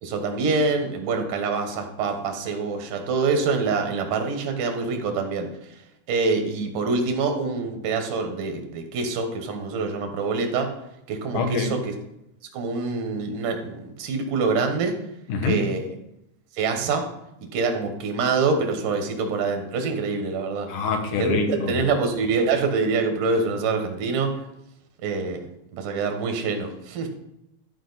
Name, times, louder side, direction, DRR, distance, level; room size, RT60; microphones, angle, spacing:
voice 1, 0.0-5.5 6.1-10.7 11.1-11.9 12.5-15.0 15.4-15.9 16.5-17.1 17.5-20.7 21.2-24.4 25.0-27.1, right 4 dB, 90° right, 5 dB, 2.8 m, -25 dB
voice 2, 11.3-11.7 15.3-15.6 20.7-21.8, left 4 dB, 85° left, 4 dB, 2.6 m, -25 dB
12.5 x 5.1 x 4.0 m, 0.83 s
omnidirectional pair, 3.6 m